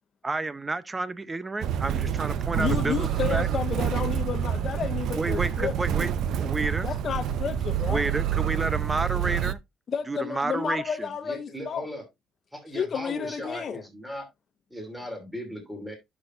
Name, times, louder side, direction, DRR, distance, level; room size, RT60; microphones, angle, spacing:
voice 1, 0.2-3.5 5.1-6.9 7.9-9.6 10.1-11.1, right 3 dB, 20° right, 0.7 m, -30 dB
Motor vehicle (road), 1.6-9.5, right 9 dB, 65° right, 0.6 m, -27 dB
sound 1, 2.0-7.6, equal, 35° right, 4.7 m, -42 dB
voice 2, 2.6-5.7 6.8-8.0 9.9-11.9 12.7-13.8, left 7 dB, 40° left, 0.6 m, -31 dB
voice 3, 11.2-12.0 12.5-14.3 14.7-16.0, equal, 5° right, 2.8 m, -38 dB
10.5 x 6.2 x 2.5 m
cardioid pair, 125°, 0 cm